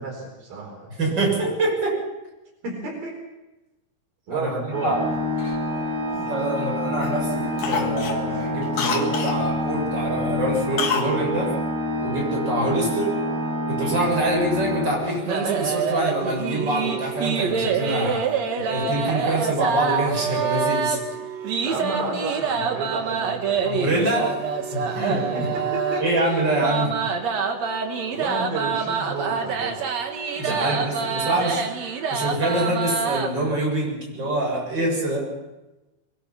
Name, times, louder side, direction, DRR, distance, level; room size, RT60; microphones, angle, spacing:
voice 1, 0.0-0.9 1.2-1.3 2.6-3.2 4.3-5.0 21.6-23.9 25.1-26.2 26.6-26.7 27.3-27.4 28.1-29.9 30.5-30.8, right 3 dB, 80° right, 1 dB, 5.9 m, -32 dB
voice 2, 1.0-2.0 4.3-4.5 4.8-5.0 6.3-11.6 12.0-13.2 13.7-18.3 18.6-21.0 23.6-24.4 24.7-25.5 26.0-26.9 30.4-31.6 32.1-35.3, right 1 dB, 30° right, -1 dB, 8.1 m, -25 dB
Organ, 4.7-15.5, left 1 dB, 10° left, 7.6 m, -27 dB
Cough, 5.4-6.6 7.0-7.2 7.6-9.4 10.8-11.1 11.4-11.5, left 5 dB, 60° left, 3.1 m, -28 dB
sound 1, 15.0-33.3, right 6 dB, 55° right, 2.7 m, -26 dB
23.5 x 23.0 x 5.8 m, 0.99 s
omnidirectional pair, 4.1 m